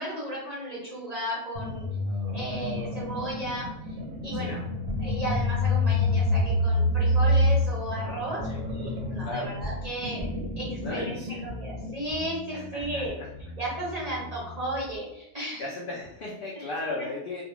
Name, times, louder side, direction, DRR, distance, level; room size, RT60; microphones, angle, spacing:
voice 1, 0.0-1.8 2.3-4.0 4.2-4.6 5.0-10.3 10.6-11.1 11.4-13.2 13.6-15.6 16.5-16.6, right 1 dB, 40° right, -6 dB, 0.6 m, -34 dB
sound 1, 1.6-12.0, left 1 dB, 85° right, 1.0 m, -28 dB
voice 2, 2.1-3.3 4.3-4.6 8.4-8.6 9.2-9.6 10.8-11.5 12.5-13.3 15.6-17.4, left 2 dB, 75° left, -4 dB, 0.5 m, -37 dB
sound 2, 4.9-9.9 10.2-15.0, left 1 dB, 10° left, 0.5 m, -40 dB
2.3 x 2.1 x 2.9 m, 0.86 s
omnidirectional pair, 1.5 m